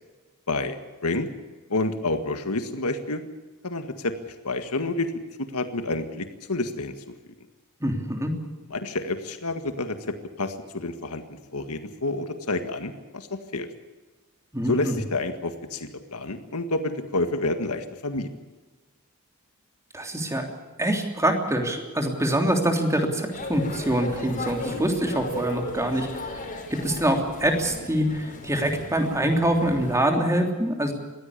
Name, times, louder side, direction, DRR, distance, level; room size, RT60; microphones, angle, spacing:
voice 1, 1.7-3.2 3.6-5.1 5.4-6.9 8.7-10.0 10.4-11.2 11.5-13.7 14.7-18.3, left 2 dB, 85° left, 8 dB, 1.9 m, -29 dB
voice 2, 7.8-8.3 14.5-15.0 19.9-20.4 20.8-26.4 26.7-30.9, right 1 dB, 15° right, 3 dB, 3.3 m, -25 dB
sound 1, 23.3-30.0, left 2 dB, 35° left, 4.7 m, -36 dB
22.0 x 16.0 x 8.5 m, 1.3 s
head